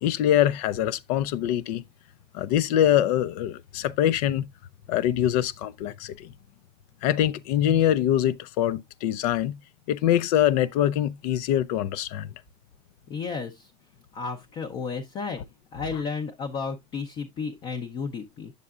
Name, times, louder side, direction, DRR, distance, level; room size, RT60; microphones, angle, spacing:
voice 1, 0.0-1.8 2.3-4.4 4.9-6.3 7.0-9.5 9.9-12.3, left 11 dB, 70° left, 0.6 m, -24 dB
voice 2, 13.1-13.7 14.1-15.4 15.7-18.5, left 5 dB, 25° left, 0.6 m, -33 dB
8.3 x 6.7 x 2.4 m
cardioid pair, 175°, 21 cm